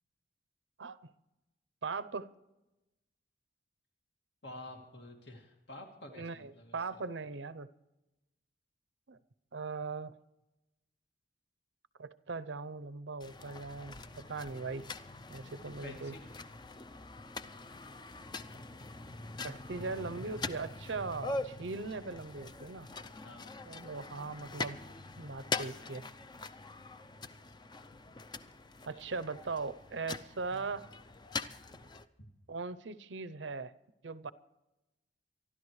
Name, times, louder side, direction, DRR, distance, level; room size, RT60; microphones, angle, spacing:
voice 1, 1.8-2.3 6.2-7.7 9.1-9.2 9.5-10.1 12.0-14.8 15.3-16.1 19.4-22.9 23.6-24.8 25.2-26.1 28.9-30.8 32.5-33.7 34.0-34.3, right 4 dB, 80° right, 14 dB, 0.7 m, -39 dB
voice 2, 4.4-6.7 15.8-16.3 23.2-23.6 30.5-30.6, left 1 dB, 65° left, 2 dB, 2.4 m, -49 dB
sound 1, 13.2-32.0, left 3 dB, 25° left, 0.5 m, -43 dB
24.5 x 12.5 x 3.2 m, 0.98 s
head